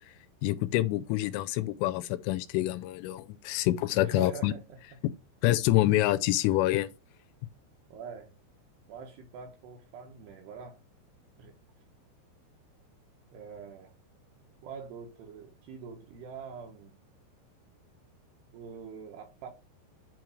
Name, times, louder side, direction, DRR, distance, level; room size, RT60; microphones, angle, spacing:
voice 1, 0.4-4.5 5.4-6.9, left 16 dB, 85° left, 3.1 m, -27 dB
voice 2, 4.0-4.8 7.9-8.3 8.9-10.8 11.4-11.5 13.3-13.9 14.6-17.0 18.5-19.5, right 5 dB, 75° right, 2.7 m, -44 dB
8.8 x 3.1 x 6.2 m
omnidirectional pair, 5.7 m